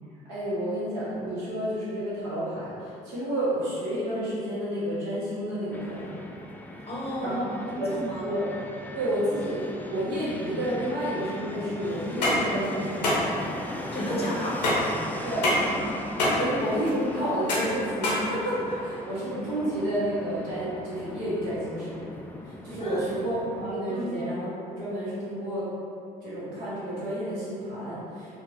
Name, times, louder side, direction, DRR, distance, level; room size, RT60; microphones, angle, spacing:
voice 1, 0.3-6.1 7.2-7.4 7.7-8.4 8.9-13.1 15.2-15.5 16.3-22.0 22.4-25.6 26.2-28.4, equal, 65° right, -9 dB, 1.3 m, -30 dB
Fixed-wing aircraft airplane, 5.7-23.7, left 1 dB, 10° left, 0.3 m, -39 dB
voice 2, 6.9-8.3 13.9-14.7 16.3-16.5 22.8-23.0 23.9-24.2, equal, 30° left, -5 dB, 0.8 m, -32 dB
sound 1, 12.0-18.9, left 1 dB, 80° left, 0.6 m, -27 dB
4.3 x 2.5 x 2.7 m, 2.7 s
figure-of-eight pair, 50°, 21 cm